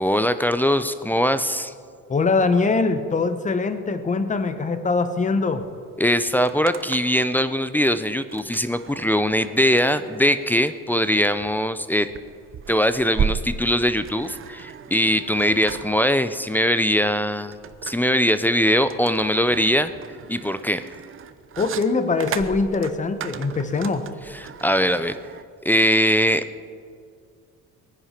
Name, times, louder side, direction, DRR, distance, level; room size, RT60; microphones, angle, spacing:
voice 1, 0.0-1.7 6.0-12.1 12.7-17.5 17.8-19.9 20.3-20.8 24.3-25.2 25.6-26.4, equal, 5° left, 12 dB, 0.4 m, -21 dB
voice 2, 2.1-5.6 21.6-24.1, left 4 dB, 25° left, 9 dB, 1.0 m, -22 dB
sound 1, 5.6-5.7 6.0-7.2 8.3-25.4, right 8 dB, 40° right, 0.7 m, -35 dB
20.5 x 9.9 x 5.8 m, 2.2 s
cardioid pair, 135°, 31 cm